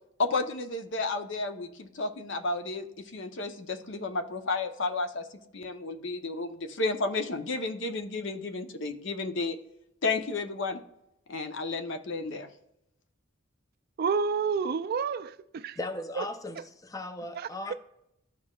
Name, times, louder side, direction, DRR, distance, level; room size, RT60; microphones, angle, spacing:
voice 1, 0.2-5.3 5.5-9.6 10.0-10.8 11.3-12.5, left 3 dB, 60° left, 0.7 m, -32 dB
voice 2, 14.0-15.8 16.2-16.3 17.3-17.5, right 5 dB, 45° right, 0.3 m, -29 dB
voice 3, 15.8-17.7, left 2 dB, 15° left, 0.5 m, -37 dB
13.5 x 4.7 x 2.3 m
head